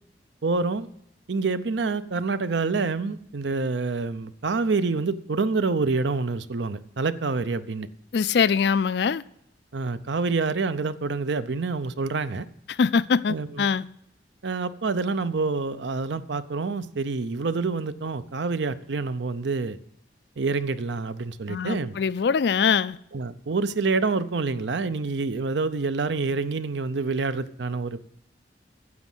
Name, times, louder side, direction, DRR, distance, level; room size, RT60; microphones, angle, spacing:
voice 1, 0.4-0.9 1.3-7.9 9.7-12.5 13.3-13.6 14.4-19.8 20.4-21.9 23.1-28.1, right 4 dB, 75° right, 0.6 m, -27 dB
voice 2, 8.1-9.2 12.7-13.9 21.5-23.0, left 6 dB, 60° left, 0.4 m, -23 dB
9.5 x 7.2 x 7.8 m
head